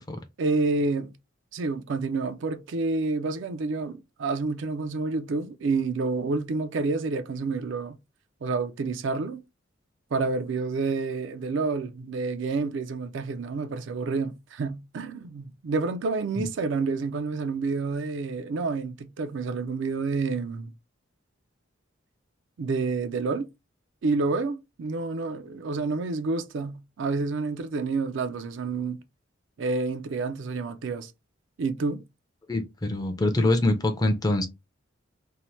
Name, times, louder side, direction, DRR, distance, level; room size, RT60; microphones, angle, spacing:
voice 1, 0.4-1.1 1.5-8.0 8.4-9.4 10.1-20.7 22.6-23.5 24.0-29.0 29.6-31.1 31.6-32.0, right 3 dB, 65° right, 0.4 m, -29 dB
voice 2, 32.5-34.5, left 2 dB, 20° left, 0.4 m, -24 dB
2.8 x 2.0 x 3.0 m
head